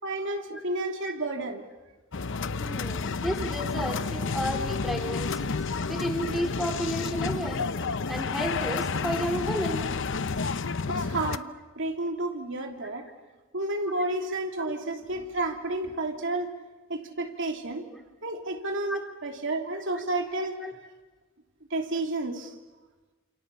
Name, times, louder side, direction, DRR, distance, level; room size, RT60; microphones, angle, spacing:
voice 1, 0.0-1.7 10.9-11.5 11.8-13.1 13.5-16.5 16.9-17.8 18.2-20.6 21.7-22.5, right 2 dB, 65° right, 3 dB, 3.1 m, -31 dB
sound 1, 2.1-11.4, left 4 dB, 65° left, 0.8 m, -30 dB
voice 2, 2.6-5.6 5.9-7.7 8.1-9.9 14.0-14.1 14.7-14.8 18.9-19.0 19.9-20.1 20.6-20.8, equal, ahead, 3 dB, 3.3 m, -32 dB
29.5 x 28.0 x 7.1 m, 1.2 s
head